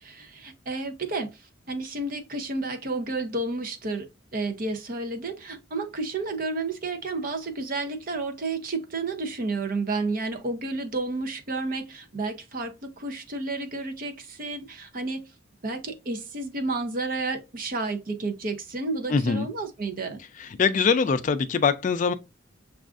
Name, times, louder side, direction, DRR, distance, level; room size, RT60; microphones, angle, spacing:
voice 1, 0.0-15.3 15.6-20.2, right 3 dB, 45° right, 0.6 m, -31 dB
voice 2, 19.1-19.5 20.4-22.1, left 5 dB, 40° left, 0.3 m, -23 dB
6.2 x 2.4 x 2.4 m
head